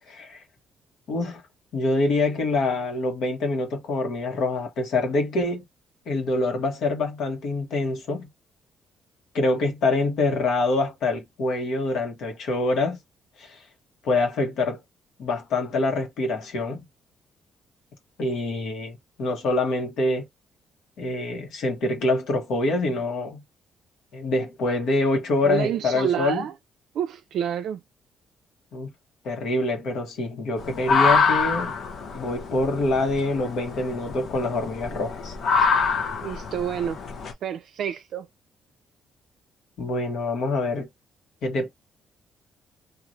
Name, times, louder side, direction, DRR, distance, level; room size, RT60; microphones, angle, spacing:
voice 1, 0.1-0.4 1.1-1.4 1.7-5.6 6.1-8.3 9.3-13.0 13.4-13.6 14.0-14.8 15.2-16.8 18.2-20.3 21.0-23.4 24.1-26.5 28.7-28.9 29.2-31.7 32.1-35.3 39.8-40.9 41.4-41.7, left 2 dB, 75° left, 1.1 m, -25 dB
voice 2, 25.4-26.5 27.0-27.8 36.2-37.0 37.4-38.3, right 9 dB, 75° right, 0.3 m, -28 dB
sound 1, 30.6-37.3, left 4 dB, 60° left, 0.7 m, -25 dB
2.5 x 2.4 x 3.0 m
cardioid pair, 90°, 0 cm